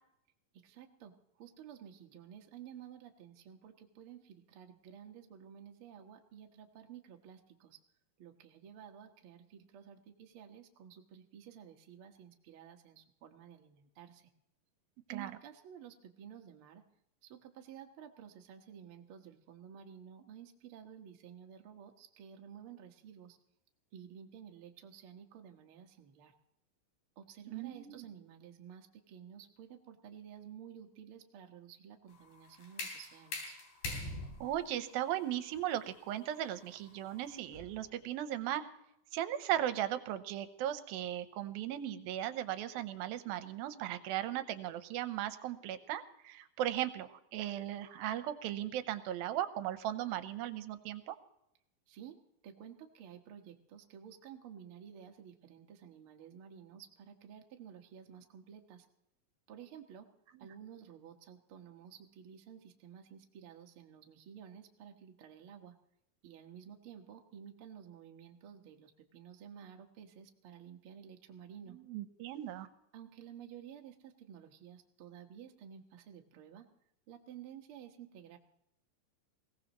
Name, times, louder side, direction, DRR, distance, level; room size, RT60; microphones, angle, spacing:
voice 1, 0.6-7.8 8.2-14.3 15.1-16.8 17.2-23.4 23.9-26.3 27.2-33.5 51.9-52.2 52.4-58.8 59.5-60.1 60.4-65.7 66.2-71.8 72.9-76.7 77.1-78.4, right 8 dB, 60° right, 3 dB, 1.4 m, -53 dB
voice 2, 27.5-28.0 34.4-38.7 39.1-51.2 60.3-60.5 71.7-72.7, right 12 dB, 85° right, 11 dB, 2.6 m, -37 dB
sound 1, 32.1-37.9, left 2 dB, 75° left, 5.0 m, -45 dB
21.0 x 17.0 x 3.0 m, 0.78 s
omnidirectional pair, 4.2 m